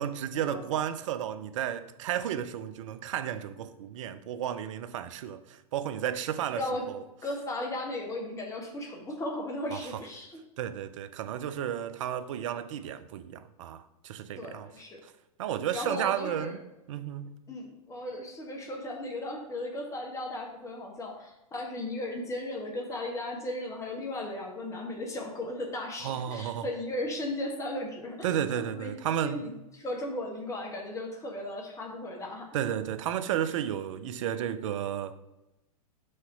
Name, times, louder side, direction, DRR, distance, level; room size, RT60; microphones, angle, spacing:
voice 1, 0.0-7.0 9.7-9.9 10.6-14.7 15.0-15.1 15.4-16.6 16.9-17.3 26.0-26.7 28.2-29.4 32.5-35.2, right 10 dB, 55° right, 0.5 m, -33 dB
voice 2, 7.2-10.3 14.4-15.0 15.7-16.6 17.5-28.5 28.7-28.9 29.2-32.5, left 1 dB, 15° left, 1.2 m, -36 dB
6.4 x 3.0 x 5.7 m
figure-of-eight pair, 100°, 19 cm